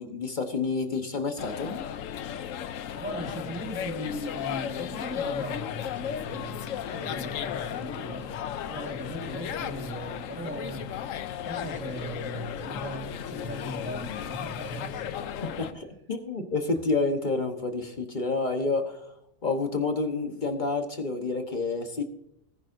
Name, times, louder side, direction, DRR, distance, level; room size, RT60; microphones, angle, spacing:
voice 1, 0.0-1.8 15.4-19.0 19.4-22.0, left 3 dB, 35° left, 5 dB, 1.2 m, -29 dB
sound 1, 1.4-15.7, left 9 dB, 70° left, 1.0 m, -35 dB
voice 2, 3.0-11.0 11.4-15.2 15.6-15.7, equal, 10° right, 0 dB, 1.6 m, -38 dB
19.0 x 10.5 x 2.6 m, 0.76 s
omnidirectional pair, 1.5 m